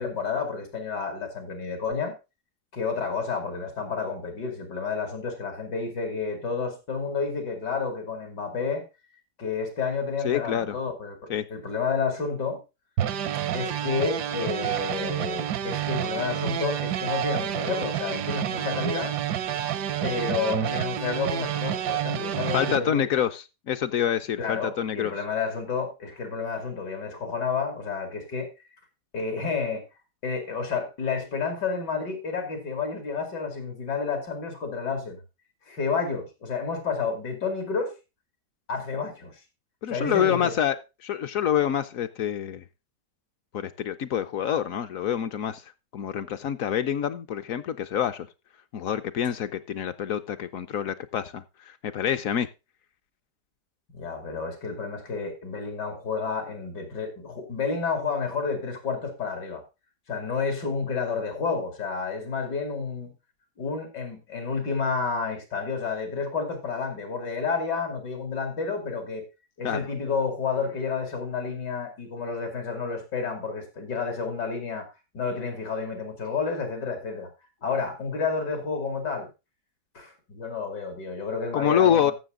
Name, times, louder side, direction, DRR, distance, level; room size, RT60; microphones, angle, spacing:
voice 1, 0.0-2.1 2.7-8.8 9.4-12.6 13.5-19.2 20.0-23.0 24.4-28.5 29.1-29.8 30.2-35.2 35.7-37.9 38.7-39.3 39.9-40.6 53.9-59.6 60.1-63.1 63.6-69.3 69.6-74.9 75.1-77.3 77.6-79.3 79.9-82.1, left 5 dB, 90° left, 3.2 m, -30 dB
voice 2, 10.2-10.8 11.3-11.5 22.5-25.1 39.8-42.6 43.5-45.6 45.9-48.3 48.7-52.5 69.6-69.9 81.5-82.1, left 9 dB, 65° left, 0.9 m, -26 dB
sound 1, 13.0-22.8, right 10 dB, 80° right, 1.4 m, -29 dB
14.0 x 6.5 x 3.7 m
omnidirectional pair, 1.8 m